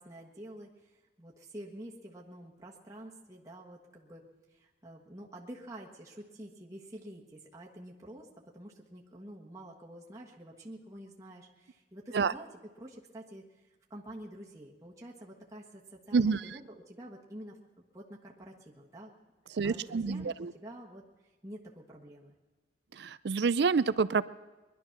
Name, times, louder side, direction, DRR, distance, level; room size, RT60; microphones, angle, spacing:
voice 1, 0.0-4.2 4.5-12.5 12.8-17.6 17.9-19.1 19.5-21.0 21.4-22.3, right 1 dB, 15° right, -3 dB, 1.3 m, -48 dB
voice 2, 16.1-16.4 19.5-20.5 23.0-24.2, right 5 dB, 65° right, 17 dB, 0.4 m, -28 dB
21.0 x 11.5 x 5.9 m, 1.2 s
head